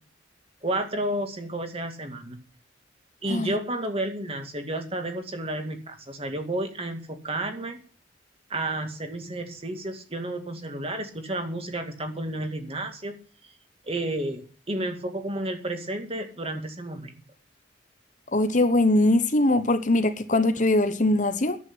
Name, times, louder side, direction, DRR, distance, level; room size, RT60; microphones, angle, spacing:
voice 1, 0.6-2.4 3.2-7.8 8.5-13.2 13.8-17.2, right 1 dB, 30° right, 2.1 m, -31 dB
voice 2, 18.3-21.6, left 2 dB, 40° left, 1.1 m, -21 dB
11.0 x 8.3 x 9.7 m
head